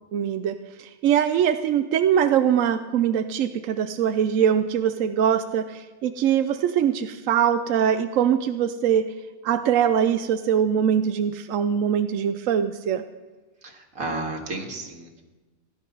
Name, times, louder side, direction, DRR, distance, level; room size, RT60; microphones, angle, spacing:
voice 1, 0.1-9.1 9.4-13.0, right 9 dB, 75° right, 9 dB, 1.0 m, -22 dB
voice 2, 13.6-15.2, right 2 dB, 90° right, 1 dB, 2.4 m, -32 dB
16.5 x 10.5 x 5.5 m, 1.2 s
omnidirectional pair, 1.4 m